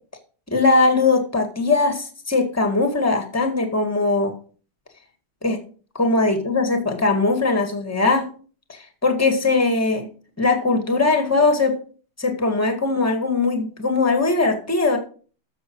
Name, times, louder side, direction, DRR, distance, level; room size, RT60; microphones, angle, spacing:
voice 1, 0.5-4.3 5.4-5.6 5.9-8.3 8.7-10.1 10.4-11.7 12.2-15.0, left 3 dB, 10° left, 5 dB, 1.7 m, -20 dB
13.5 x 6.8 x 4.7 m, 0.40 s
omnidirectional pair, 2.4 m